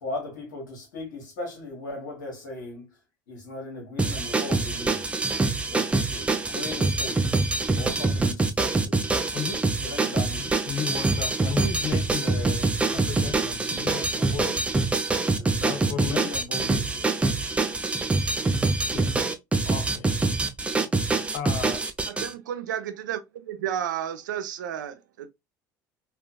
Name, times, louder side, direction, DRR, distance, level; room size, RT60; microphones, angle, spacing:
voice 1, 0.0-2.9 3.3-5.1 5.7-7.3 7.7-9.0 9.8-10.5 15.3-17.3, left 2 dB, 75° left, 1.3 m, -38 dB
sound 1, 4.0-22.3, right 3 dB, 10° right, 0.4 m, -25 dB
voice 2, 10.7-14.6 15.6-16.3 18.9-19.1 19.7-20.2 21.3-21.8, left 7 dB, 60° left, 0.7 m, -34 dB
voice 3, 22.1-25.3, right 10 dB, 75° right, 0.4 m, -32 dB
3.3 x 2.3 x 2.3 m
figure-of-eight pair, 65°, 10 cm